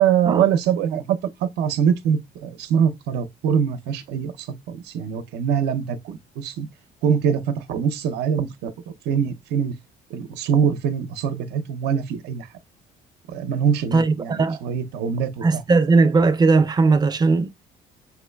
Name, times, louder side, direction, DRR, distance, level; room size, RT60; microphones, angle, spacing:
voice 1, 0.0-6.7 7.0-9.7 10.1-12.5 13.3-15.6, right 8 dB, 80° right, 0.6 m, -23 dB
voice 2, 13.9-14.6 15.4-17.5, right 4 dB, 25° right, 0.4 m, -18 dB
5.8 x 3.0 x 2.2 m
cardioid pair, 110°, 17 cm